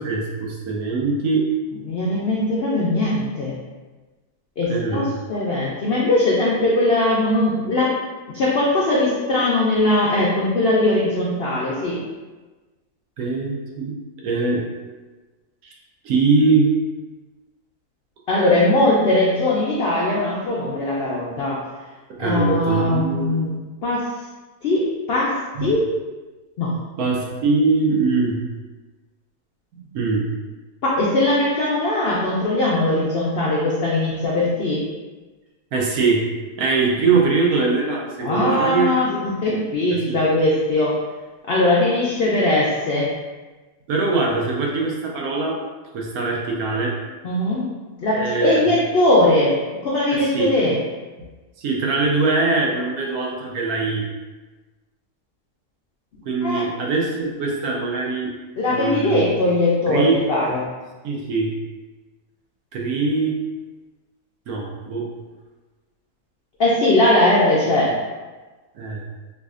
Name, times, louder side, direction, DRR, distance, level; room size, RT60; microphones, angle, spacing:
voice 1, 0.0-1.5 4.7-5.1 13.2-14.0 14.2-14.7 15.6-15.7 16.0-16.7 22.2-23.4 25.6-25.7 27.0-28.4 29.8-30.3 35.7-36.3 36.6-39.2 40.1-40.2 43.9-45.6 45.9-47.0 48.1-48.7 50.1-50.5 51.6-54.1 56.3-58.3 58.7-59.3 59.9-60.2 61.0-61.5 62.7-63.4 64.5-65.1 68.7-69.0, right 4 dB, 70° right, -1 dB, 1.1 m, -22 dB
voice 2, 1.9-3.6 4.6-7.9 8.3-12.0 18.3-21.6 22.2-23.6 23.8-24.1 24.6-25.8 26.6-26.7 30.8-34.8 38.2-41.0 41.5-43.1 47.2-47.6 48.0-50.7 56.4-56.6 58.6-60.7 66.6-68.0, left 2 dB, 85° left, -5 dB, 0.5 m, -20 dB
4.7 x 2.3 x 2.4 m, 1.3 s
omnidirectional pair, 1.7 m